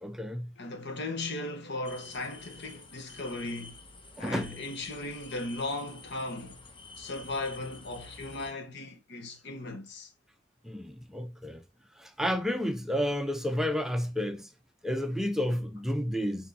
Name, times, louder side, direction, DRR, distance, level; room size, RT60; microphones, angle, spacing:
voice 1, 0.0-0.5 4.2-4.6 10.6-11.6 11.9-14.5 14.8-16.5, equal, ahead, 0.5 m, -31 dB
voice 2, 0.6-3.8 4.2-6.6 7.0-10.1, left 2 dB, 60° left, 1.5 m, -37 dB
sound 1, 1.8-8.5, left 3 dB, 25° left, 1.1 m, -49 dB
6.5 x 4.2 x 4.2 m
head